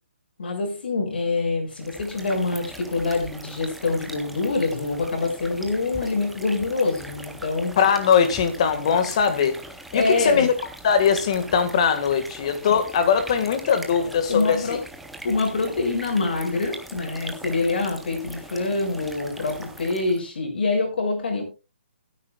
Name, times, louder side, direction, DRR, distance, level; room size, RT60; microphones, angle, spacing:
voice 1, 0.4-7.8 9.9-10.5 14.3-14.8 15.2-21.4, left 3 dB, 50° left, 6.3 m, -25 dB
sound 1, 1.7-20.3, right 1 dB, ahead, 0.6 m, -41 dB
voice 2, 7.8-9.6 9.9-10.5 10.8-14.8, left 7 dB, 30° left, 1.6 m, -21 dB
21.0 x 10.0 x 2.3 m
hypercardioid pair, 175°, 6 cm